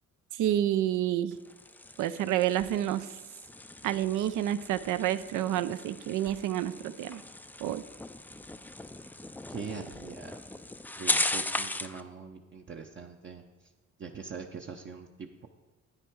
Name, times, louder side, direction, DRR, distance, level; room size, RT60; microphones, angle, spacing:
voice 1, 0.4-1.4 2.0-3.1 3.8-7.2 7.6-7.8, right 12 dB, 80° right, 13 dB, 0.6 m, -29 dB
sound 1, 1.3-12.0, left 2 dB, 5° left, 0.3 m, -37 dB
voice 2, 9.5-10.4 11.0-13.4 14.0-15.5, right 5 dB, 40° right, 2 dB, 0.7 m, -42 dB
9.9 x 9.2 x 4.5 m, 1.2 s
cardioid pair, 90°, 30 cm